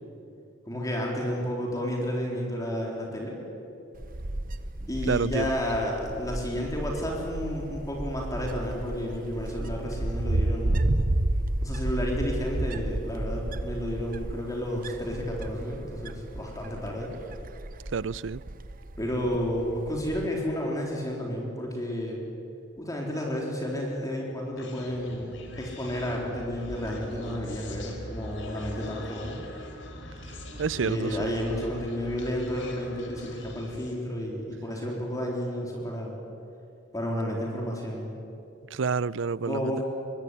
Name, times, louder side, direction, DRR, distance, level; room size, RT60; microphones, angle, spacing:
voice 1, 0.7-3.4 4.9-10.9 11.6-17.1 19.0-22.2 22.8-29.4 30.8-36.1 36.9-38.1 39.5-39.8, equal, 20° left, 3.9 m, -31 dB
Wind, 4.0-20.3, right 1 dB, 50° right, 1.0 m, -32 dB
voice 2, 5.1-5.6 17.9-18.4 30.6-31.3 38.7-39.8, right 5 dB, 75° right, 0.5 m, -29 dB
Human voice, 24.6-34.0, left 1 dB, 70° left, 4.4 m, -42 dB
24.5 x 21.0 x 9.9 m
head